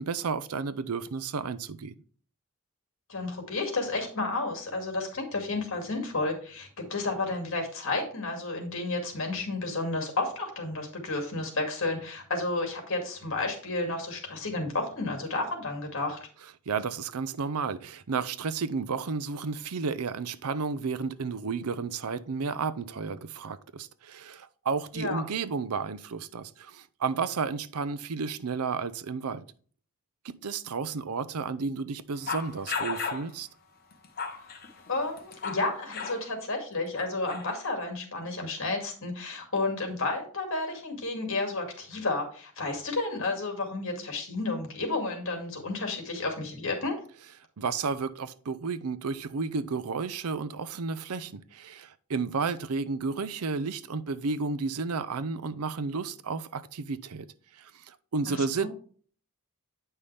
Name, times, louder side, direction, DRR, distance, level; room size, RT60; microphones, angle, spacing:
voice 1, 0.0-1.9 16.7-29.4 30.2-33.5 47.6-57.3 57.6-58.7, right 4 dB, 90° right, 0.6 m, -32 dB
voice 2, 3.1-16.3 24.9-25.2 34.9-47.0 58.3-58.7, left 2 dB, 60° left, 2.3 m, -31 dB
sound 1, 32.3-33.3 33.9-35.7 35.9-36.2 37.0-37.7, left 5 dB, 45° left, 1.0 m, -35 dB
8.9 x 5.6 x 3.3 m
head